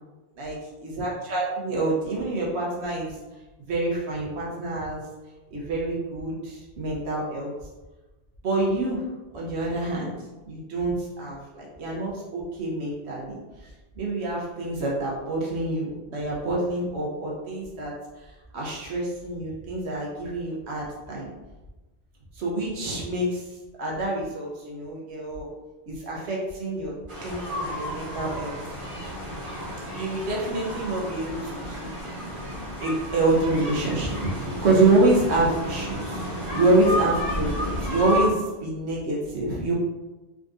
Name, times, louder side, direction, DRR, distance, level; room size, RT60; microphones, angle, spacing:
voice 1, 0.8-3.2 3.7-5.0 5.5-7.5 8.4-9.0 9.3-10.1 10.5-13.7 14.0-21.3 22.3-25.5 25.9-26.9 27.2-28.5 29.9-32.1 32.8-39.7, right 2 dB, 90° right, -4 dB, 1.1 m, -27 dB
sound 1, 27.1-38.3, equal, 30° right, 0.9 m, -32 dB
3.7 x 3.5 x 2.6 m, 1.1 s
omnidirectional pair, 1.1 m